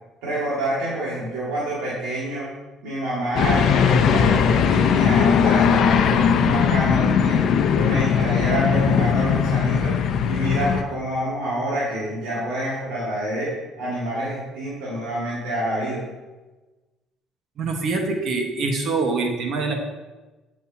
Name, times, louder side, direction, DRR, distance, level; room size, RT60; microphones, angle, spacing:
voice 1, 0.2-2.5 2.8-7.4 7.7-9.9 10.2-16.0, right 1 dB, 90° right, -8 dB, 2.1 m, -27 dB
sound 1, 3.4-10.8, left 7 dB, 60° left, 0.6 m, -19 dB
voice 2, 17.6-19.7, right 3 dB, 55° right, 3 dB, 1.3 m, -24 dB
8.2 x 6.6 x 2.9 m, 1.2 s
cardioid pair, 95°, 0 cm